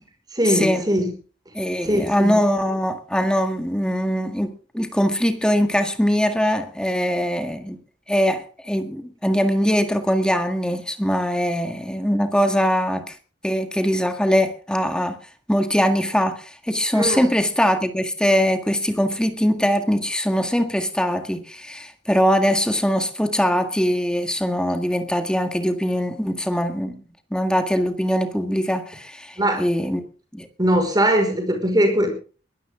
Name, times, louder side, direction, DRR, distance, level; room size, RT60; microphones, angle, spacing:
voice 1, 0.3-1.1 1.8-2.4 16.9-17.3 29.4-29.7 30.6-32.1, equal, 20° right, 5.2 m, -20 dB
voice 2, 1.5-7.8 8.1-13.1 13.4-15.2 15.5-27.0 27.3-30.0 30.3-30.5, equal, 5° left, 1.8 m, -22 dB
22.0 x 13.0 x 3.7 m
head